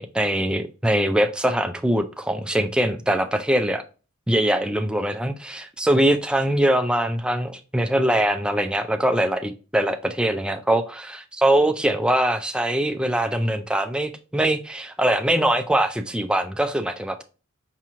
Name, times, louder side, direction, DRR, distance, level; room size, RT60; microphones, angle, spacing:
voice 1, 0.0-3.8 4.3-17.2, right 1 dB, 5° right, 0.3 m, -22 dB
5.6 x 2.9 x 2.5 m
head